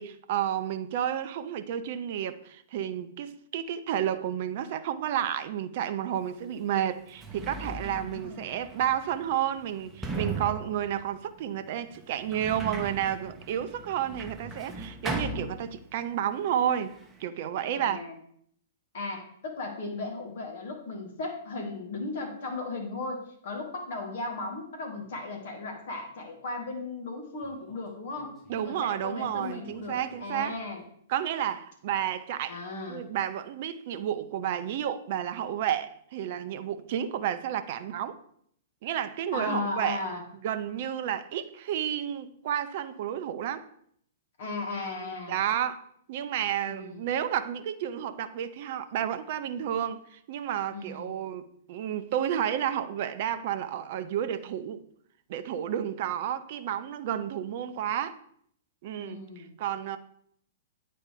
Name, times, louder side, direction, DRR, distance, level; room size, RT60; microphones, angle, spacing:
voice 1, 0.0-16.9 17.2-18.1 28.5-30.5 31.1-32.6 32.9-38.2 38.8-40.0 40.4-43.6 45.0-45.8 46.1-54.8 55.3-58.2 58.8-59.2 59.6-60.0, right 10 dB, 45° right, 0.6 m, -31 dB
Sliding door, 6.3-6.4 7.0-16.1 16.4-17.2, right 3 dB, 10° right, 0.9 m, -38 dB
voice 2, 8.0-8.5 17.7-18.2 18.9-28.3 28.6-30.8 32.5-33.0 39.3-40.2 44.4-45.4 46.6-47.0 50.7-51.1 59.0-59.5, left 3 dB, 55° left, 2.1 m, -36 dB
Speech, 27.4-30.8, left 1 dB, 10° left, 3.6 m, -59 dB
8.9 x 4.3 x 5.0 m
figure-of-eight pair, 110°, 0 cm